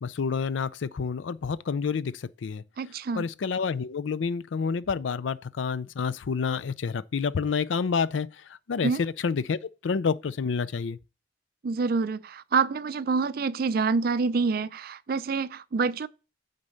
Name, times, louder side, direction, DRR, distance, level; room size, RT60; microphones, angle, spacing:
voice 1, 0.0-2.6 3.2-11.0, left 5 dB, 80° left, 0.4 m, -29 dB
voice 2, 2.8-3.2 8.8-9.0 11.6-16.1, right 4 dB, 50° right, 0.4 m, -27 dB
8.8 x 4.0 x 6.4 m
head